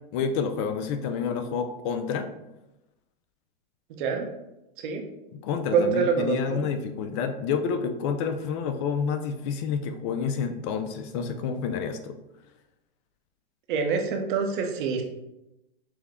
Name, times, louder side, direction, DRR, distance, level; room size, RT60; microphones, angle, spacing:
voice 1, 0.1-2.3 5.3-12.2, left 6 dB, 30° left, 8 dB, 0.4 m, -29 dB
voice 2, 4.0-4.3 4.8-5.0 5.7-6.6 13.7-15.0, right 6 dB, 55° right, 3 dB, 0.9 m, -26 dB
6.0 x 2.1 x 3.5 m, 0.93 s
hypercardioid pair, 140°, 30 cm